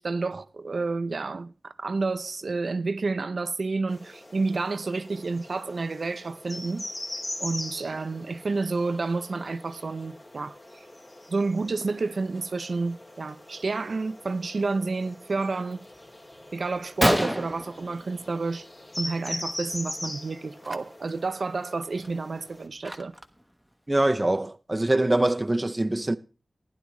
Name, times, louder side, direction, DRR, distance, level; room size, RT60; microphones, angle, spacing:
voice 1, 0.0-6.9 7.4-10.9 11.3-15.8 16.5-18.7 19.0-23.1, right 3 dB, 60° right, 0.5 m, -30 dB
sound 1, 3.9-22.7, left 1 dB, 45° left, 2.8 m, -41 dB
Gunshot gunfire, 16.3-16.4 16.7-16.8 17.0-18.6 18.9-19.3 19.5-19.8 20.6-20.8 21.3-21.4 21.8-23.4, equal, ahead, 1.0 m, -28 dB
voice 2, 23.9-26.2, right 1 dB, 20° right, 0.6 m, -24 dB
15.5 x 10.5 x 3.1 m
wide cardioid pair, 75°, 0 cm